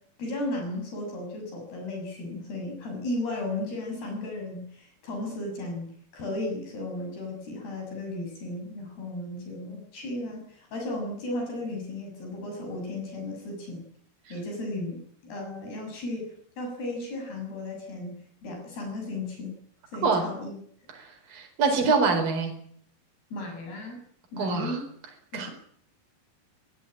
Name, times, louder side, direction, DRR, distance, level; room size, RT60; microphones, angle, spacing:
voice 1, 0.2-13.8 14.3-18.1 18.4-19.6 19.9-20.6 23.3-24.0 24.3-24.8 25.3-25.5, left 2 dB, 65° left, 2 dB, 8.5 m, -35 dB
voice 2, 20.9-22.5 24.4-24.8 25.3-25.5, right 4 dB, 55° right, 2 dB, 6.3 m, -25 dB
25.0 x 18.5 x 8.8 m, 0.65 s
omnidirectional pair, 4.9 m